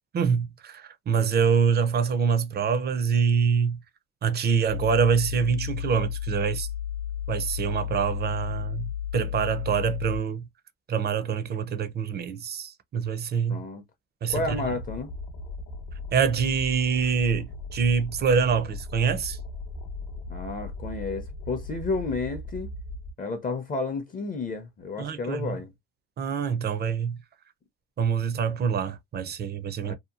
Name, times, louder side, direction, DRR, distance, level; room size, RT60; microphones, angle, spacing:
voice 1, 0.1-3.8 4.2-6.7 7.3-10.5 10.9-13.6 14.2-14.6 16.1-19.4 25.0-25.6 26.2-27.2 28.0-29.9, right 6 dB, 35° right, 0.5 m, -25 dB
sound 1, 4.7-10.2, left 10 dB, 80° right, 0.7 m, -33 dB
voice 2, 13.5-13.8 14.3-15.1 20.3-22.7 23.2-25.7 29.8-29.9, left 3 dB, 30° left, 0.6 m, -31 dB
sound 2, 14.3-23.1, left 2 dB, 65° left, 0.7 m, -38 dB
2.8 x 2.2 x 2.3 m
cardioid pair, 100°, 30 cm